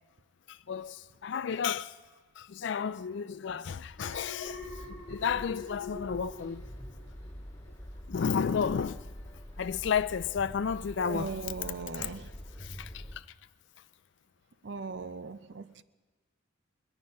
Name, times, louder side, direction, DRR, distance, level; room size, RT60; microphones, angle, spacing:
voice 1, 0.5-2.0 2.4-6.6 8.1-9.1 9.6-11.4 11.6-12.2 12.6-13.3, left 7 dB, 60° left, 0.3 m, -32 dB
Alarm, 4.0-7.3 7.7-8.0, left 2 dB, 85° right, 3.1 m, -45 dB
sound 1, 4.4-13.2, equal, 20° left, 1.6 m, -46 dB
voice 2, 11.0-12.3 14.6-15.8, right 3 dB, 60° right, 0.5 m, -38 dB
23.5 x 9.8 x 5.3 m
head